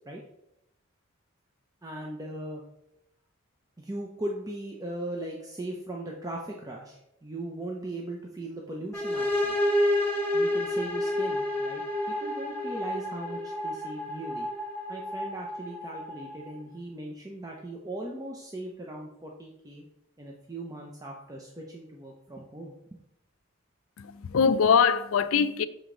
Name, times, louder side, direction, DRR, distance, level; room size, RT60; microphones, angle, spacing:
voice 1, 1.8-2.6 3.8-9.6 10.3-14.5 14.9-19.8 20.2-22.7, right 1 dB, 15° right, 0.6 m, -39 dB
sound 1, 8.9-16.6, left 1 dB, 10° left, 1.1 m, -29 dB
voice 2, 24.0-25.7, left 6 dB, 75° left, 0.4 m, -23 dB
7.1 x 5.0 x 3.8 m
head